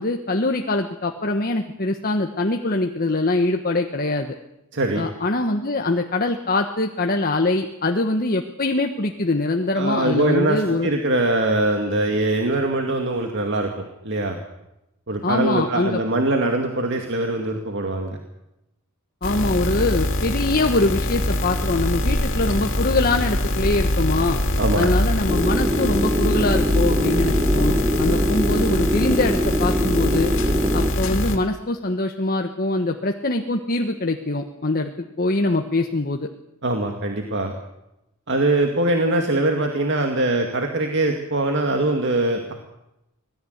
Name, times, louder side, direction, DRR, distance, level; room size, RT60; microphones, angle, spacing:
voice 1, 0.0-4.4 4.9-10.9 15.2-16.0 19.2-24.4 24.8-30.3 30.7-36.3, left 2 dB, 40° left, 4 dB, 1.3 m, -23 dB
voice 2, 4.7-5.0 9.8-14.4 15.1-18.2 24.6-25.0 36.6-37.5 38.3-42.5, right 2 dB, 55° right, 3 dB, 2.3 m, -22 dB
sound 1, 19.2-31.4, left 1 dB, 60° left, 3.1 m, -23 dB
sound 2, 25.3-30.9, equal, 15° right, 1.2 m, -23 dB
25.5 x 18.0 x 8.1 m, 0.89 s
head